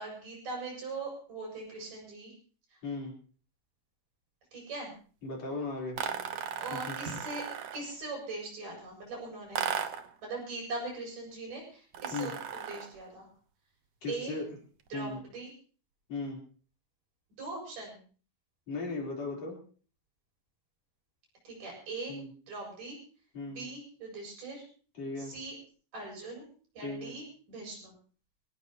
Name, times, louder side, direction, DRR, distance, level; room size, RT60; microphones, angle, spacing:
voice 1, 0.0-2.3 4.5-4.9 6.6-7.4 7.7-9.6 10.2-13.3 14.1-14.4 14.9-15.5 17.3-18.0 21.4-22.2 22.5-23.0 23.5-24.6 25.2-25.6 25.9-26.5 26.7-27.9, right 3 dB, 90° right, -1 dB, 9.0 m, -41 dB
voice 2, 2.8-3.1 5.2-6.0 6.7-7.0 12.1-12.3 14.0-14.5 14.9-15.2 16.1-16.4 18.7-19.6 22.1-22.3 23.3-23.7 25.0-25.3 26.8-27.1, left 3 dB, 55° left, -1 dB, 5.1 m, -37 dB
sound 1, 6.0-7.9 9.5-10.1 11.9-13.0, right 8 dB, 60° right, 2.0 m, -36 dB
24.0 x 17.5 x 3.0 m, 0.41 s
omnidirectional pair, 3.7 m